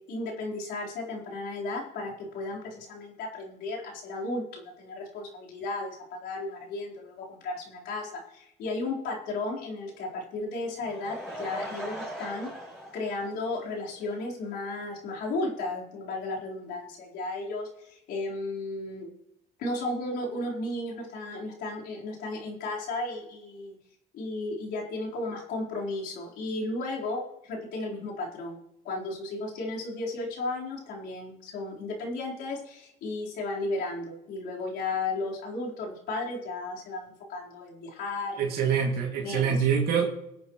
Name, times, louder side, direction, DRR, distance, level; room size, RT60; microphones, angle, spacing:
voice 1, 0.0-12.5 12.9-19.1 19.6-23.8 24.1-28.6 28.8-38.6 39.2-39.6, left 2 dB, 80° left, -3 dB, 4.3 m, -34 dB
Laughter / Crowd, 10.7-14.1 14.5-14.6 15.1-15.2 15.4-15.5, equal, ahead, 6.2 m, -40 dB
voice 2, 38.4-40.0, right 7 dB, 70° right, -1 dB, 2.5 m, -25 dB
23.0 x 8.9 x 3.2 m, 0.80 s
cardioid pair, 110°, 17 cm